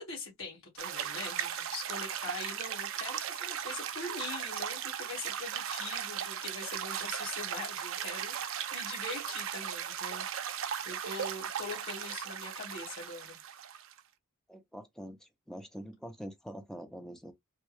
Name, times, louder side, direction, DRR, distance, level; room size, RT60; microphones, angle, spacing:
voice 1, 0.0-13.4, left 3 dB, 60° left, 1.7 m, -43 dB
sound 1, 0.8-14.0, right 9 dB, 65° right, 0.4 m, -37 dB
voice 2, 14.5-17.3, equal, ahead, 0.5 m, -45 dB
3.4 x 2.2 x 3.1 m
head